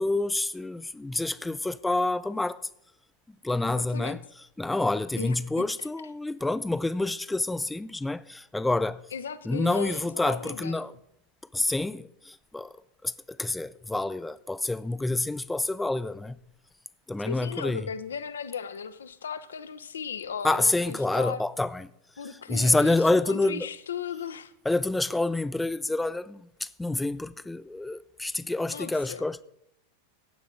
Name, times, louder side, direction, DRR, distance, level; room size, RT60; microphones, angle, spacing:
voice 1, 0.0-2.6 3.4-4.2 4.6-9.0 9.5-10.9 11.5-12.7 13.0-16.4 17.1-17.8 20.4-21.9 22.5-23.7 24.7-29.4, left 2 dB, 5° left, 0.3 m, -28 dB
voice 2, 3.6-4.2 5.2-5.4 5.8-5.9 9.1-10.9 17.2-21.4 22.2-24.5 28.7-29.3, left 7 dB, 65° left, 0.6 m, -37 dB
15.0 x 9.0 x 3.8 m
figure-of-eight pair, 90°, 0 cm